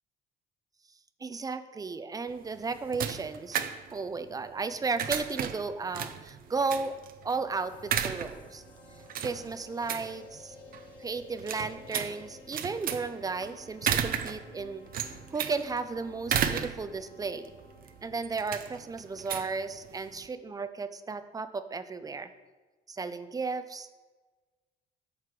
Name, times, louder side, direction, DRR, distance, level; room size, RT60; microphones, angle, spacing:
voice 1, 1.2-3.6 3.9-7.0 7.2-8.6 9.2-10.5 11.0-14.8 15.3-17.5 18.0-22.3 22.9-23.9, right 4 dB, 20° right, 11 dB, 0.7 m, -34 dB
sound 1, 2.3-20.3, right 8 dB, 60° right, 0.8 m, -35 dB
sound 2, 7.5-18.1, left 5 dB, 30° left, 2.1 m, -54 dB
13.0 x 5.7 x 4.9 m, 1.3 s
cardioid pair, 110°, 17 cm